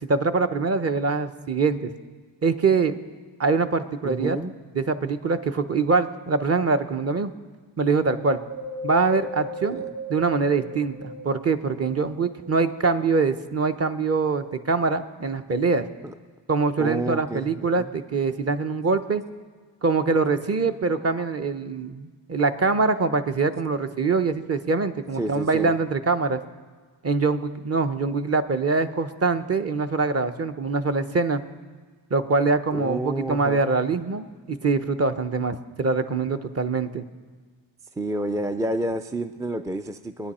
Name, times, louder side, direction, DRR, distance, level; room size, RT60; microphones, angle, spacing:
voice 1, 0.0-1.9 2.4-3.0 3.4-4.4 4.7-7.3 7.8-8.4 8.8-9.8 10.1-15.9 16.5-19.2 19.8-26.4 27.0-31.4 32.1-37.0, right 4 dB, 30° right, 8 dB, 0.9 m, -24 dB
voice 2, 4.0-4.5 9.7-9.8 16.0-16.1 16.8-17.5 17.8-17.9 25.2-25.7 32.7-33.7 38.0-40.3, right 1 dB, 10° right, 9 dB, 0.4 m, -29 dB
Wind, 8.0-11.6 12.1-13.4 13.9-14.0, equal, 55° right, 2.5 m, -37 dB
22.0 x 10.0 x 4.3 m, 1.5 s
cardioid pair, 80°, 47 cm